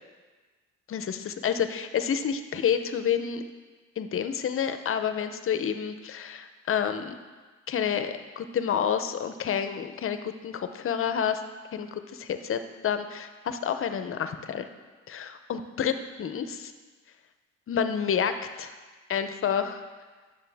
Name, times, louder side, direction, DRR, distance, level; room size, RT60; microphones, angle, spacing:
voice 1, 0.9-3.4 4.0-7.2 7.7-11.4 11.7-14.7 15.1-16.7 17.7-18.7 19.1-19.8, left 8 dB, 45° left, 9 dB, 0.6 m, -29 dB
9.6 x 6.5 x 3.4 m, 1.3 s
cardioid pair, 90°, 30 cm